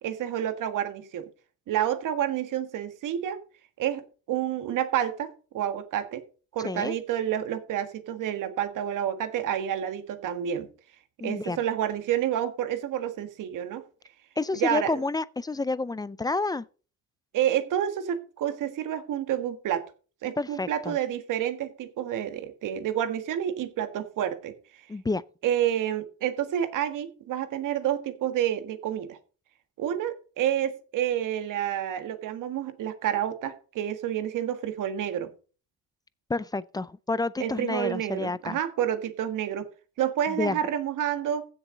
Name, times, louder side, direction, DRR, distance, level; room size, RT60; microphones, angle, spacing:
voice 1, 0.0-1.3 1.7-3.4 3.8-6.2 6.5-10.7 11.2-13.8 14.5-15.0 17.3-19.8 20.2-24.5 25.4-29.2 29.8-35.3 37.4-39.7 40.0-41.5, right 10 dB, 75° right, 1.7 m, -29 dB
voice 2, 6.6-7.0 11.2-11.6 14.4-16.7 20.4-21.0 24.9-25.2 36.3-38.6 40.3-40.6, left 3 dB, 15° left, 0.4 m, -29 dB
15.5 x 7.0 x 3.9 m
cardioid pair, 125°, 32 cm